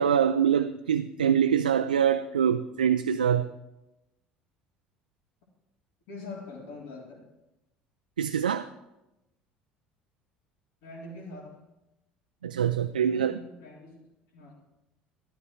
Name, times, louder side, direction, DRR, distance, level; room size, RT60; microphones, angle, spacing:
voice 1, 0.0-3.5 8.2-8.7 12.4-13.4, right 8 dB, 85° right, 0.3 m, -24 dB
voice 2, 6.1-7.2 10.8-11.6 12.9-14.1 14.3-14.5, left 2 dB, 65° left, 3.4 m, -44 dB
13.0 x 12.5 x 4.7 m
figure-of-eight pair, 60°, 4 cm